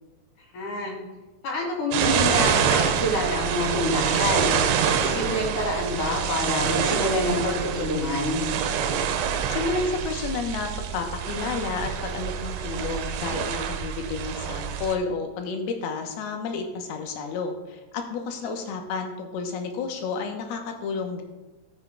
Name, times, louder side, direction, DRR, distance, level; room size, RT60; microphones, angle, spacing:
voice 1, 0.5-0.9 1.4-4.6 4.9-8.4, left 1 dB, 50° left, -2 dB, 3.4 m, -27 dB
sound 1, 1.9-15.0, right 8 dB, 85° right, 2.8 m, -26 dB
voice 2, 9.5-21.2, left 4 dB, 75° left, 4 dB, 2.6 m, -31 dB
15.0 x 8.2 x 2.3 m, 1.1 s
omnidirectional pair, 5.0 m